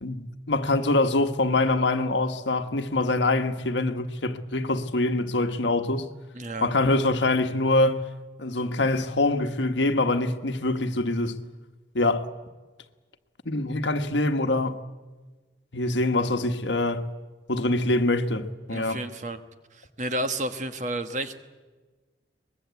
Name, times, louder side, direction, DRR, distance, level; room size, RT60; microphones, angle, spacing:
voice 1, 0.0-6.1 6.6-8.1 8.4-11.4 11.9-12.3 13.4-14.8 15.7-17.0 17.5-19.0, left 2 dB, 80° left, 1.3 m, -24 dB
voice 2, 6.3-6.7 18.7-19.4 19.8-21.4, right 1 dB, 40° right, 1.3 m, -31 dB
23.5 x 21.0 x 8.2 m
head